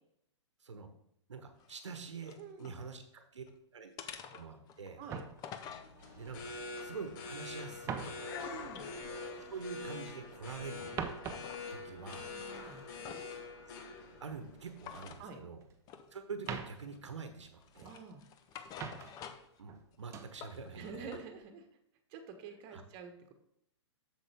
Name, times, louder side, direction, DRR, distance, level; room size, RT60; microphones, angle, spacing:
voice 1, 1.3-3.4 3.7-3.9 4.3-5.0 6.1-6.5 6.8-8.3 9.5-11.0 11.7-12.3 13.7-13.8 14.2-15.6 16.1-17.9 19.6-21.1 22.7-22.8, right 5 dB, 75° right, 7 dB, 1.1 m, -45 dB
sound 1, 1.6-2.8 3.2-3.6 4.0-5.9 6.5-8.3 8.6-10.5 10.9-11.7 12.0-13.4 14.8-15.2 15.9-16.1 16.4-17.2 17.6-19.6 19.9-21.3, left 8 dB, 25° left, 0.7 m, -51 dB
voice 2, 2.4-2.8 5.0-5.2 8.4-8.9 12.1-13.3 15.2-15.4 17.8-18.2 20.7-21.7 22.1-23.3, right 5 dB, 35° right, 5 dB, 1.3 m, -48 dB
sound 2, 5.0-7.1 7.4-10.2 10.5-14.7 15.0-15.9 16.3-18.1 18.5-19.4 19.7-20.4 20.8-21.1, right 6 dB, 20° right, 0.7 m, -46 dB
sound 3, 5.7-15.2, left 4 dB, 40° left, 1.4 m, -45 dB
7.9 x 7.1 x 3.5 m, 0.75 s
figure-of-eight pair, 120°, 15 cm